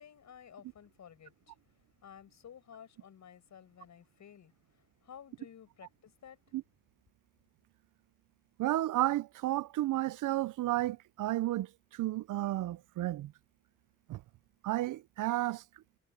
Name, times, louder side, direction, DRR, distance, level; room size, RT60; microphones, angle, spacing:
voice 1, 0.0-6.4, left 8 dB, 60° left, 7.5 m, -54 dB
voice 2, 8.6-13.3 14.1-14.2 14.6-15.6, right 15 dB, 70° right, 0.6 m, -32 dB
cardioid pair, 95°, 32 cm